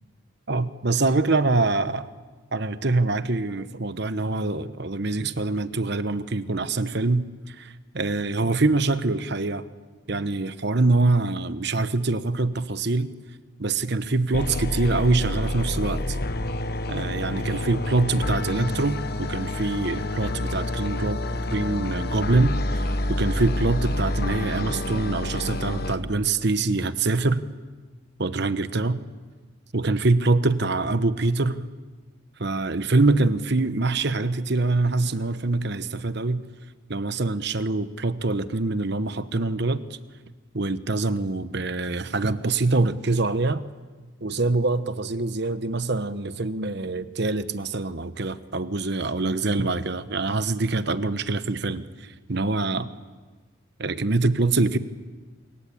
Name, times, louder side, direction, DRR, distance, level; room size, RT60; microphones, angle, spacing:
voice 1, 0.5-2.1 2.5-9.6 10.1-13.1 13.6-16.2 16.9-21.2 21.5-27.4 28.2-29.0 29.7-31.6 32.4-36.4 36.9-39.8 40.5-43.6 44.2-51.8 52.3-52.9 53.8-54.8, right 3 dB, 55° right, 13 dB, 1.1 m, -24 dB
sound 1, 14.3-26.0, left 1 dB, 50° left, 1.3 m, -28 dB
27.0 x 23.0 x 8.7 m, 1.4 s
head